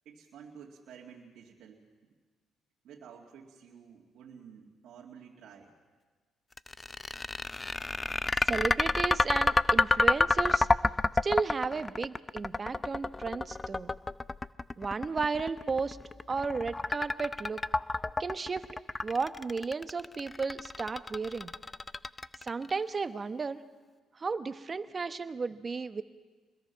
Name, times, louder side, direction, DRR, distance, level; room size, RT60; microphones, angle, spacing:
voice 1, 0.0-1.9 2.8-5.7, right 7 dB, 70° right, -2 dB, 2.3 m, -51 dB
sound 1, 6.6-22.7, left 3 dB, 25° left, 0.6 m, -29 dB
voice 2, 8.4-10.7 11.2-13.9 14.8-16.0 16.3-17.6 18.2-18.7 19.0-21.5 22.4-23.6 24.2-26.0, right 4 dB, 40° right, 11 dB, 1.2 m, -33 dB
27.5 x 21.5 x 5.9 m, 1.4 s
supercardioid pair, 55°, 0 cm